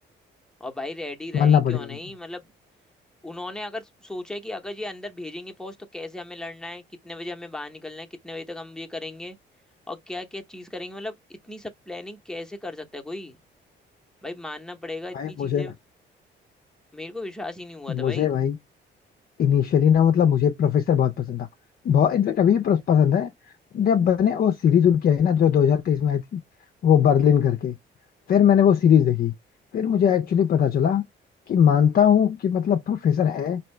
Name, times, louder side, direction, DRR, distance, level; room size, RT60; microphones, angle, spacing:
voice 1, 0.6-2.5 3.2-9.4 9.9-11.1 11.4-13.4 14.2-15.7 16.9-18.3, left 2 dB, 5° left, 0.8 m, -36 dB
voice 2, 1.3-1.8 15.1-15.7 17.9-18.6 19.4-21.5 21.8-23.3 23.7-26.4 26.8-27.8 28.3-29.3 29.7-31.0 31.5-33.6, left 8 dB, 50° left, 0.5 m, -20 dB
4.2 x 2.7 x 3.2 m
cardioid pair, 90°, 20 cm